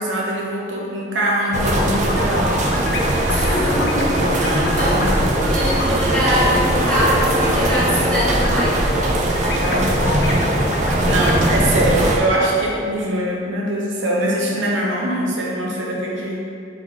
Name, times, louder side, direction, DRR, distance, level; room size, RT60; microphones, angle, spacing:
voice 1, 0.0-2.6 4.3-5.9 9.6-10.3 11.0-16.4, right 1 dB, 80° right, -3 dB, 0.7 m, -23 dB
sound 1, 1.5-12.2, right 1 dB, 40° right, 0.3 m, -20 dB
sound 2, 1.6-5.9 6.3-11.3, left 3 dB, 60° left, 0.4 m, -28 dB
voice 2, 3.2-5.0 5.4-8.9 9.2-9.4, equal, 5° left, -11 dB, 1.0 m, -23 dB
3.6 x 3.1 x 3.6 m, 2.4 s
head